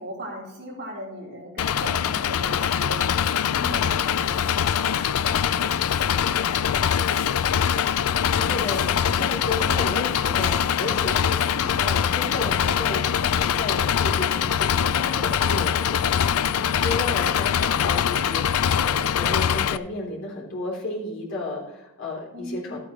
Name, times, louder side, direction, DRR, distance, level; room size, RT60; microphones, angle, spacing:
voice 1, 0.0-5.0 5.7-8.7 16.6-17.0 22.3-22.8, equal, 45° right, -4 dB, 4.1 m, -40 dB
Engine, 1.6-19.8, left 8 dB, 75° left, 0.4 m, -23 dB
voice 2, 8.3-22.8, left 2 dB, 55° left, -3 dB, 3.5 m, -33 dB
14.5 x 8.8 x 3.2 m, 0.97 s
head